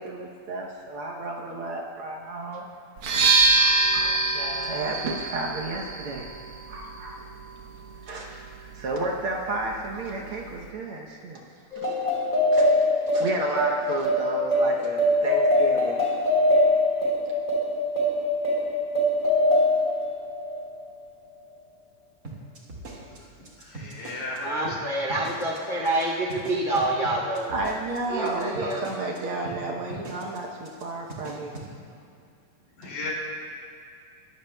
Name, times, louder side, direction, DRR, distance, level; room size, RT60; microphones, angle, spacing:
voice 1, 0.0-2.7 3.5-6.3 6.7-7.3 8.0-11.9 12.5-12.8 13.1-16.0 17.0-17.1 27.5-31.6, right 2 dB, 80° right, -1 dB, 1.2 m, -32 dB
sound 1, 3.0-10.7, right 3 dB, 60° right, 1.5 m, -26 dB
sound 2, 11.7-20.7, left 1 dB, 15° left, 3.4 m, -23 dB
sound 3, 22.2-24.4 24.6-24.8 25.1-25.6 25.8-26.0 26.3-29.2 29.4-29.6 29.9-30.4 30.6-30.8 31.1-31.7, right 2 dB, 35° right, 1.8 m, -40 dB
voice 2, 23.4-24.8 31.8-31.9 32.8-33.1, left 2 dB, 65° left, -4 dB, 4.0 m, -35 dB
voice 3, 24.4-27.5 28.1-28.8, right 2 dB, 35° left, -4 dB, 1.1 m, -27 dB
21.5 x 14.5 x 2.3 m, 2.4 s
omnidirectional pair, 3.7 m